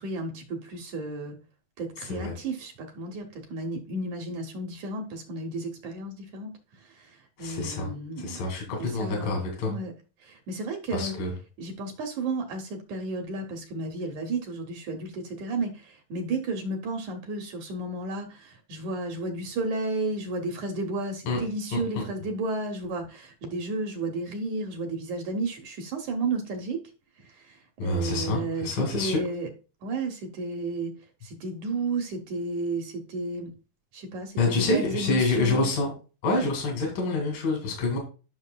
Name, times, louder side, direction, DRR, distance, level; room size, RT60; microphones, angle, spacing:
voice 1, 0.0-1.4 1.8-8.4 8.8-9.9 10.2-11.2 11.6-26.8 27.3-29.5 29.8-31.0 31.2-33.5 33.9-35.7, right 2 dB, 70° right, 3 dB, 2.0 m, -33 dB
voice 2, 2.0-2.3 7.4-7.9 8.2-9.7 10.9-11.3 21.3-21.4 21.7-22.1 27.8-29.2 34.4-35.9 36.2-38.0, left 2 dB, 70° left, 1 dB, 3.9 m, -27 dB
12.0 x 6.3 x 2.2 m, 0.35 s
omnidirectional pair, 4.1 m